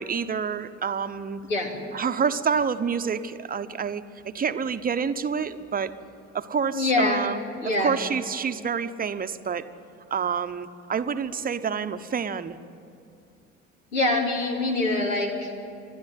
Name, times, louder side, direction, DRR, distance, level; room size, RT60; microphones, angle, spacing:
voice 1, 0.0-1.4 1.9-5.9 6.3-7.4 7.8-9.7 10.1-12.6, right 6 dB, 20° right, 10 dB, 1.0 m, -28 dB
voice 2, 1.5-1.8 6.7-7.3 7.6-8.0 13.9-15.5, left 2 dB, 75° left, 1 dB, 3.1 m, -24 dB
28.5 x 12.5 x 9.5 m, 2.7 s
figure-of-eight pair, 60°, 39 cm